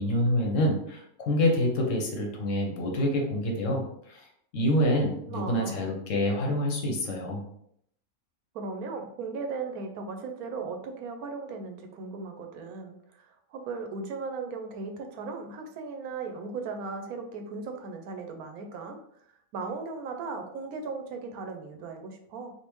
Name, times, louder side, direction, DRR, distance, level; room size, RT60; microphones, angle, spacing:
voice 1, 0.0-4.3 4.5-7.4, left 1 dB, 65° left, 1 dB, 1.0 m, -27 dB
voice 2, 5.3-5.8 8.5-19.0 19.5-22.5, right 4 dB, 85° right, 5 dB, 1.1 m, -37 dB
3.5 x 2.6 x 3.0 m, 0.71 s
omnidirectional pair, 1.5 m